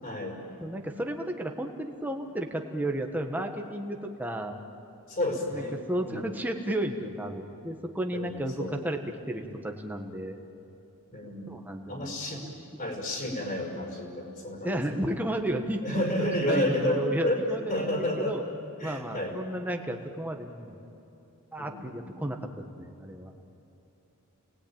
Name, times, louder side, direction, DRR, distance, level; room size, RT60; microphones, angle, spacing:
voice 1, 0.0-0.4 5.1-6.4 8.1-8.8 11.1-11.6 11.9-12.5 12.8-14.8 15.8-17.4 17.7-18.4 18.8-19.3 21.6-22.0, left 1 dB, 40° left, 0 dB, 5.6 m, -31 dB
voice 2, 0.6-4.6 5.5-10.4 11.5-12.8 14.6-18.4 18.8-20.8 21.5-23.3, right 1 dB, 10° right, 3 dB, 1.5 m, -33 dB
29.5 x 20.0 x 9.0 m, 2.9 s
head